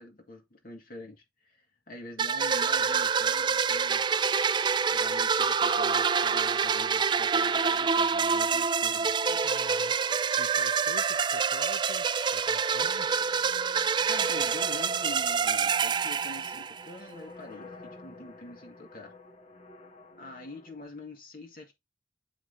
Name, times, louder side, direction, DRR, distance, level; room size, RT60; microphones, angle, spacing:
voice 1, 0.0-4.1 4.8-9.4 14.0-19.1 20.2-21.7, left 2 dB, 55° left, 2.1 m, -46 dB
sound 1, 2.2-17.0, right 6 dB, 25° right, 0.3 m, -26 dB
voice 2, 9.4-10.0 10.4-12.1 12.3-13.3, left 3 dB, 85° left, 0.9 m, -45 dB
sound 2, 12.8-20.8, left 2 dB, 35° left, 1.5 m, -51 dB
7.8 x 4.8 x 3.7 m
head